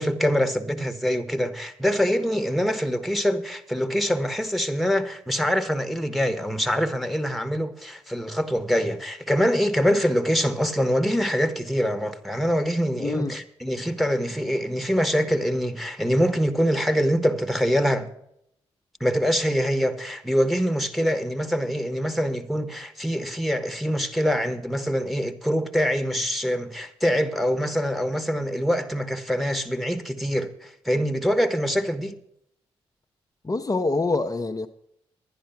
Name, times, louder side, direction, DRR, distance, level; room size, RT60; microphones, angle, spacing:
voice 1, 0.0-18.1 19.0-32.1, equal, ahead, 1.5 m, -24 dB
voice 2, 13.0-13.3 33.4-34.7, left 3 dB, 30° left, 0.8 m, -25 dB
11.0 x 10.5 x 5.8 m
supercardioid pair, 45°, 12 cm